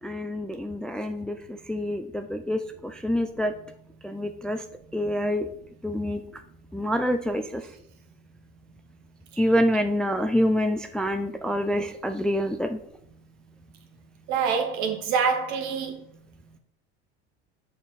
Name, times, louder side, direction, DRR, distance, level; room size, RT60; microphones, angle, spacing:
voice 1, 0.0-3.5 4.0-4.6 4.9-5.5 5.8-6.2 6.7-7.6 9.4-12.8, equal, ahead, 0.4 m, -26 dB
voice 2, 14.3-16.0, right 6 dB, 60° right, 1.8 m, -25 dB
6.9 x 5.8 x 4.1 m
supercardioid pair, 100°, 33 cm